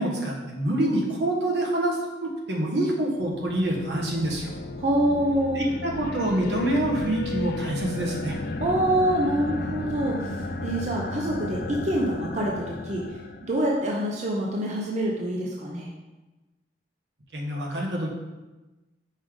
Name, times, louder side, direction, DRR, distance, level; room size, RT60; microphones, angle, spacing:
voice 1, 0.0-4.5 5.5-8.4 17.3-18.1, right 1 dB, 75° right, -1 dB, 1.3 m, -26 dB
sound 1, 3.2-13.7, left 2 dB, 60° left, 0.4 m, -34 dB
voice 2, 4.8-5.6 8.6-15.9, right 1 dB, 40° right, -2 dB, 0.7 m, -26 dB
5.3 x 5.0 x 3.7 m, 1.1 s
head